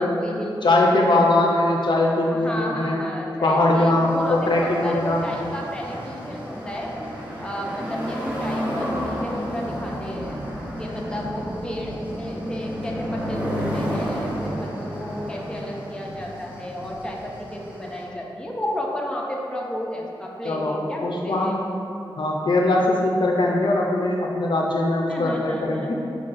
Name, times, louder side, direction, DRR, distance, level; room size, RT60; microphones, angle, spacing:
voice 1, 0.0-0.8 1.2-1.5 2.3-6.9 7.4-10.4 10.8-21.6 25.1-26.0, equal, 10° left, -2 dB, 0.6 m, -32 dB
voice 2, 0.6-3.0 3.4-5.2 20.4-21.6 22.2-26.0, left 2 dB, 60° left, -1 dB, 0.4 m, -21 dB
sound 1, 4.0-18.0, equal, 15° right, 0.9 m, -31 dB
4.6 x 3.8 x 2.5 m, 2.6 s
wide cardioid pair, 70°, 9 cm